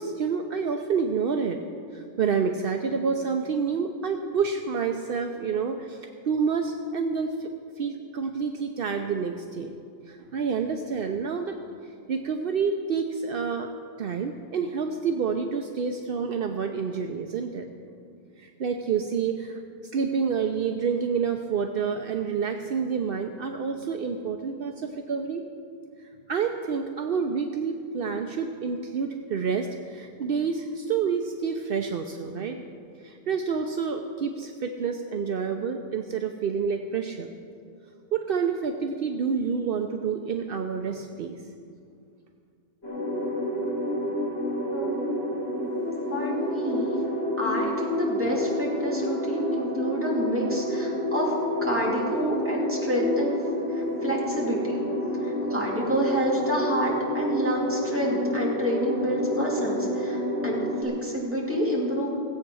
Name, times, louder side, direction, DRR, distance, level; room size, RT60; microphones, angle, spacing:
voice 1, 0.0-1.6 1.9-7.5 7.8-9.7 10.1-11.5 11.8-13.7 14.0-17.7 18.4-19.6 19.9-25.4 26.0-32.6 33.0-37.3 38.1-41.4, right 6 dB, 65° right, 4 dB, 0.9 m, -28 dB
sound 1, 42.8-60.8, equal, 90° left, 2.6 m, -29 dB
voice 2, 44.7-45.1 45.6-45.7 46.1-47.0 47.4-51.3 51.6-53.4 53.7-54.9 55.2-62.1, equal, 10° right, -4 dB, 2.7 m, -28 dB
17.0 x 8.3 x 6.2 m, 2.4 s
omnidirectional pair, 1.0 m